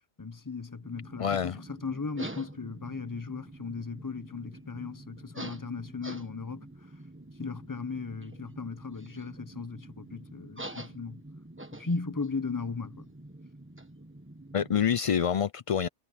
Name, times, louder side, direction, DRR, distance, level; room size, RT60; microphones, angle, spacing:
voice 1, 0.2-6.7 7.4-11.2 11.8-13.1, left 4 dB, 20° left, 0.7 m, -37 dB
sound 1, 0.8-15.0, right 1 dB, 10° right, 1.4 m, -46 dB
voice 2, 1.2-1.6 14.5-15.9, left 8 dB, 60° left, 0.3 m, -27 dB
omnidirectional pair, 1.2 m